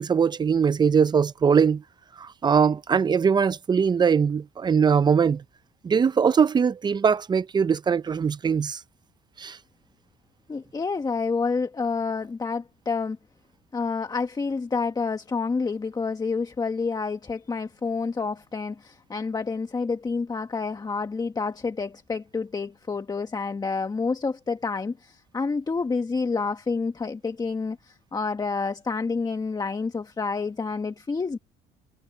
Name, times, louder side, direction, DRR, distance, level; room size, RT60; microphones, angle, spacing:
voice 1, 0.0-1.8 2.2-5.4 5.8-8.8 9.4-9.6, right 6 dB, 25° right, 0.5 m, -21 dB
voice 2, 10.5-13.2 13.7-31.4, left 4 dB, 25° left, 1.5 m, -28 dB
cardioid pair, 110°, 17 cm